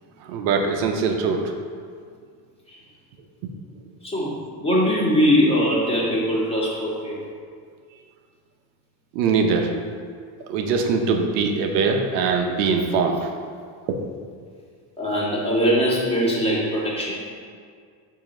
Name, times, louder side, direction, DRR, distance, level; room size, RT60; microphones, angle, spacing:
voice 1, 0.3-1.4 9.1-9.7 10.5-13.3 13.9-14.0, right 5 dB, 85° right, 4 dB, 0.8 m, -22 dB
voice 2, 4.0-7.2 15.0-17.2, equal, 10° left, -5 dB, 1.6 m, -21 dB
7.3 x 2.9 x 5.2 m, 2.1 s
supercardioid pair, 115°, 47 cm